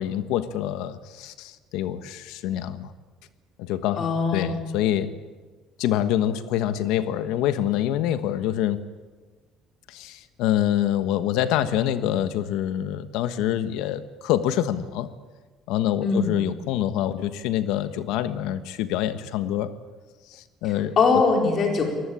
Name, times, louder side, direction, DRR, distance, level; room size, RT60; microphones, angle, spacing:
voice 1, 0.0-2.9 3.6-4.1 4.3-5.1 5.8-8.8 9.9-15.1 15.7-19.7 20.3-20.9, left 11 dB, 90° left, 12 dB, 1.3 m, -26 dB
voice 2, 4.0-4.6 16.0-16.3 21.0-21.8, left 4 dB, 40° left, 2 dB, 4.4 m, -21 dB
24.5 x 19.5 x 8.6 m, 1.3 s
cardioid pair, 160°, 0 cm